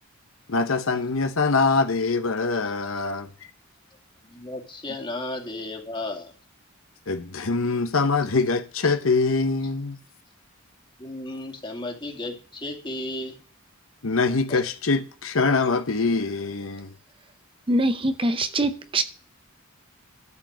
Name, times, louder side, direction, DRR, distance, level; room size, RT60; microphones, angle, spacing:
voice 1, 0.5-3.3 7.1-10.0 14.0-16.9, left 4 dB, 70° left, 0.9 m, -24 dB
voice 2, 4.2-6.3 11.0-13.4 14.5-14.6, left 2 dB, 25° left, 2.6 m, -34 dB
voice 3, 17.7-19.0, right 1 dB, 25° right, 0.7 m, -23 dB
12.5 x 5.0 x 7.8 m
head